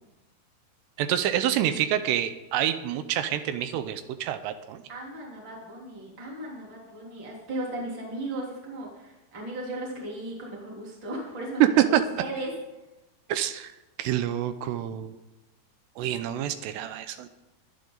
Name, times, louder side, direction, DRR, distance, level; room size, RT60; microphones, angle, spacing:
voice 1, 1.0-4.8 11.6-12.0 13.3-13.7 14.0-15.2 16.0-17.3, right 11 dB, 80° right, 11 dB, 2.7 m, -26 dB
voice 2, 4.9-12.5, right 1 dB, 25° right, -3 dB, 3.5 m, -36 dB
24.0 x 8.9 x 4.0 m, 1.0 s
omnidirectional pair, 5.3 m